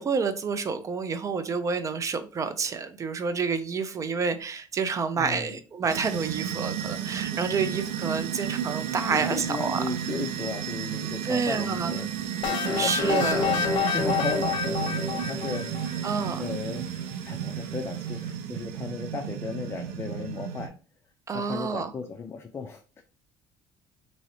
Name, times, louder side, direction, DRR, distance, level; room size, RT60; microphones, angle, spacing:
voice 1, 0.0-9.8 11.2-11.9 12.8-13.5 16.0-16.5 21.3-21.9, right 5 dB, 35° right, 0.5 m, -29 dB
voice 2, 5.2-5.6 9.1-12.1 12.4-16.1 16.4-16.8 17.2-20.7 21.3-23.0, left 5 dB, 30° left, 0.4 m, -35 dB
sound 1, 5.9-20.7, right 9 dB, 90° right, 0.5 m, -32 dB
sound 2, 12.4-16.2, left 6 dB, 65° left, 0.7 m, -28 dB
3.0 x 2.7 x 2.8 m
cardioid pair, 95°, 10 cm